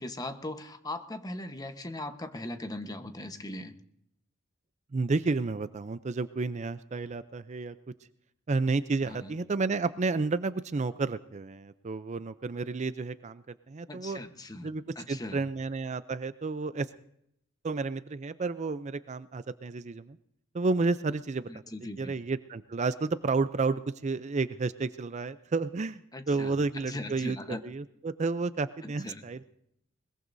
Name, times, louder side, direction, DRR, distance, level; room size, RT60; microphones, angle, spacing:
voice 1, 0.0-3.7 9.0-9.3 13.9-14.7 15.0-15.4 21.5-22.1 26.1-26.5 26.8-27.6 28.8-29.2, left 1 dB, 20° left, 7 dB, 1.1 m, -39 dB
voice 2, 4.9-7.7 8.5-14.2 14.6-16.9 17.6-20.2 20.5-21.5 22.0-26.0 26.3-29.5, right 3 dB, 35° right, 13 dB, 0.5 m, -31 dB
21.5 x 21.0 x 2.7 m, 0.74 s
head